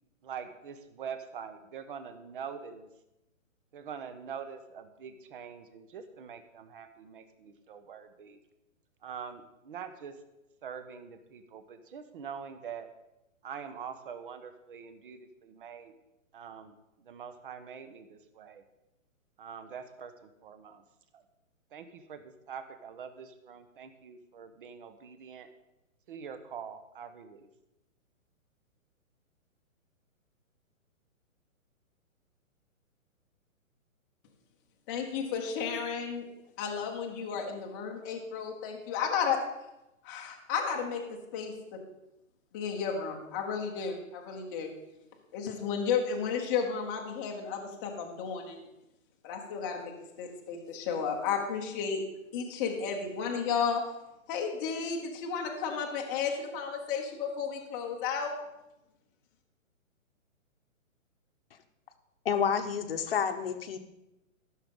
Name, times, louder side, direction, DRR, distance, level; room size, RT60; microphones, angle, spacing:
voice 1, 0.2-2.9 3.7-8.4 9.0-10.1 10.6-12.9 13.4-15.9 16.3-16.7 17.0-18.6 19.4-20.8 21.1-21.2 21.7-25.5 26.1-27.5, right 7 dB, 40° right, 10 dB, 1.0 m, -44 dB
voice 2, 34.9-36.2 36.6-39.4 40.0-41.0 41.3-41.8 42.5-44.7 45.3-48.7 49.2-52.0 52.3-53.8 54.3-58.3, left 6 dB, 15° left, 1 dB, 0.9 m, -33 dB
voice 3, 62.2-63.8, left 7 dB, 45° left, 8 dB, 1.0 m, -29 dB
14.5 x 6.5 x 5.3 m, 0.92 s
hypercardioid pair, 165°, 41 cm